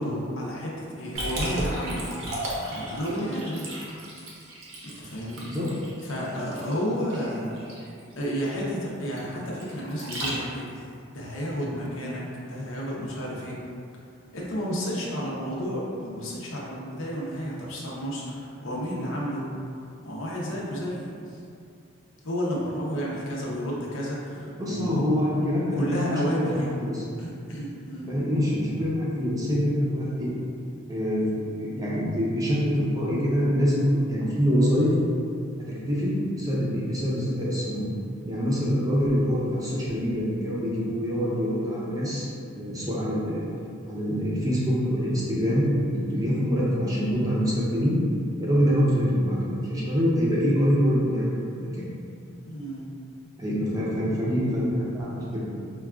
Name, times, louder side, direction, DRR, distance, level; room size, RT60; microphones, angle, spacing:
voice 1, 0.0-2.1 2.7-3.7 4.8-5.5 6.0-7.6 8.2-13.6 14.3-19.4 20.0-21.1 22.2-25.0 25.7-26.5 27.2-28.1 52.4-52.9, equal, 85° left, -4 dB, 0.7 m, -31 dB
Liquid, 1.1-10.8, right 1 dB, 75° right, 0.7 m, -35 dB
voice 2, 24.3-27.0 28.0-30.3 30.9-31.3 31.6-34.9 35.7-37.9 38.2-42.3 42.5-43.4 43.8-48.0 48.4-51.9 53.4-55.4, equal, 20° right, -7 dB, 0.5 m, -25 dB
4.6 x 2.3 x 2.3 m, 2.4 s
head